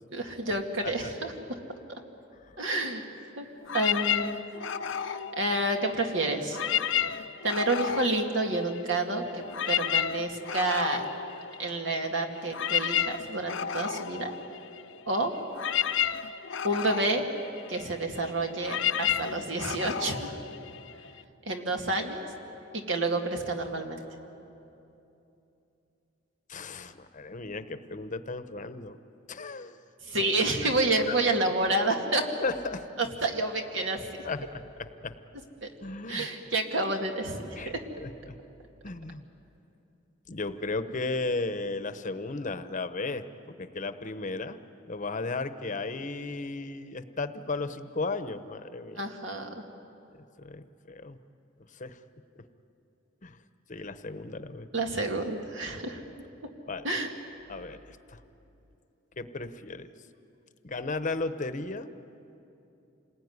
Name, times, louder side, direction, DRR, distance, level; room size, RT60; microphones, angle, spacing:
voice 1, 0.1-1.3 1.9-2.0 2.6-3.0 3.4-3.5 3.7-4.4 5.0-6.6 7.4-11.1 11.6-14.3 15.1-15.3 16.6-17.2 17.7-20.3 21.4-22.3 22.9-24.0 30.0-32.3 33.0-34.0 35.6-35.7 36.1-37.8 49.0-49.6 54.7-56.0 56.8-57.1, right 2 dB, 70° right, 3 dB, 2.4 m, -29 dB
sound 1, 3.7-6.1 6.4-9.0 9.3-21.2, left 9 dB, 75° left, 0.7 m, -32 dB
voice 2, 26.5-29.0 29.3-29.8 30.1-30.2 31.1-31.2 31.6-31.7 32.4-32.9 34.2-35.1 35.8-36.3 37.6-38.3 38.8-39.2 40.3-44.6 44.9-49.0 50.4-51.2 51.7-52.0 53.2-53.4 53.7-54.7 56.7-56.9 57.5-58.2 59.2-59.9 60.6-61.9, left 3 dB, 40° left, 11 dB, 0.9 m, -35 dB
27.5 x 20.0 x 9.6 m, 2.9 s
head